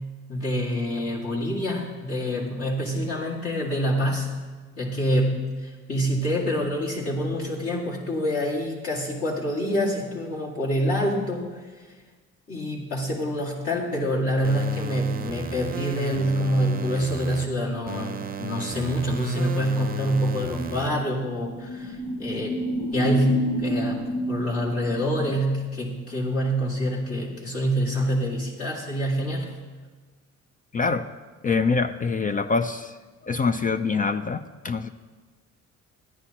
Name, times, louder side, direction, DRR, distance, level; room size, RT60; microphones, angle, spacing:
voice 1, 0.3-4.3 4.8-11.6 12.5-22.6 22.9-24.0 24.3-29.5, equal, 50° left, -4 dB, 2.1 m, -26 dB
sound 1, 14.4-17.4 17.9-20.9, right 6 dB, 30° right, 0.6 m, -34 dB
sound 2, 20.3-25.4, equal, 85° left, 1.4 m, -30 dB
voice 2, 30.7-31.1 31.4-33.0 33.2-34.9, left 4 dB, 30° left, 10 dB, 0.4 m, -25 dB
14.5 x 9.8 x 2.9 m, 1.3 s
cardioid pair, 90°, 30 cm